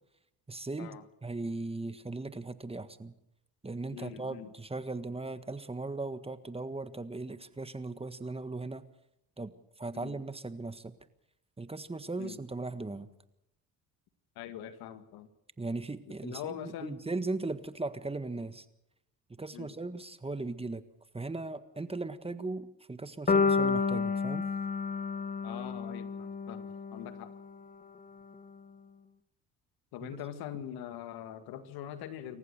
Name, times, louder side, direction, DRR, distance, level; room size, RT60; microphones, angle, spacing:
voice 1, 0.5-3.1 3.6-8.8 9.4-10.9 11.6-13.1 15.6-18.6 19.4-20.8 21.1-24.5 30.0-30.1, right 3 dB, 15° right, 11 dB, 1.6 m, -38 dB
voice 2, 3.9-4.5 9.9-10.2 12.2-12.4 14.4-15.3 16.2-17.0 19.5-19.8 25.4-27.3 29.9-32.4, left 10 dB, 75° left, 10 dB, 2.0 m, -43 dB
sound 1, 23.3-27.4, left 5 dB, 20° left, 0.9 m, -30 dB
27.0 x 15.0 x 6.6 m, 0.82 s
supercardioid pair, 70°, 37 cm